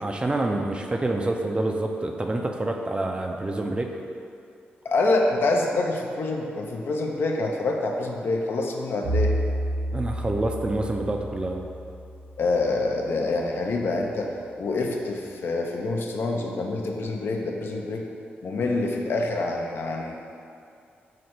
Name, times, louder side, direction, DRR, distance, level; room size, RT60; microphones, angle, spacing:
voice 1, 0.0-3.9 9.9-11.6, right 2 dB, 25° right, 2 dB, 0.4 m, -27 dB
voice 2, 4.8-9.3 12.4-14.3 14.6-18.0 18.4-20.2, left 2 dB, 65° left, 1 dB, 0.5 m, -26 dB
Bowed string instrument, 9.0-13.2, right 1 dB, 80° right, 0.7 m, -30 dB
4.9 x 2.1 x 4.3 m, 2.5 s
cardioid pair, 80°, 4 cm